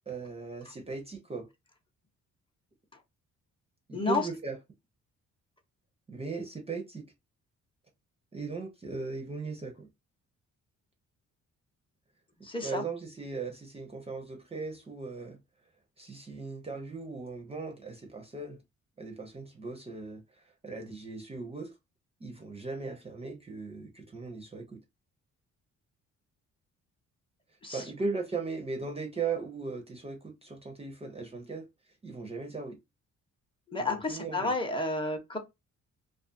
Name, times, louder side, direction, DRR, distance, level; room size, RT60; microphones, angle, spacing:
voice 1, 0.1-1.5 3.9-4.6 6.1-7.0 8.3-9.9 12.6-15.4 16.0-18.6 19.0-20.2 20.6-21.7 22.2-24.8 27.7-31.7 32.0-32.8 33.8-34.5, right 4 dB, 20° right, 0.6 m, -38 dB
voice 2, 12.4-12.8 27.6-27.8 33.7-35.4, left 3 dB, 15° left, 0.7 m, -31 dB
2.4 x 2.4 x 2.5 m
cardioid pair, 90°, 30 cm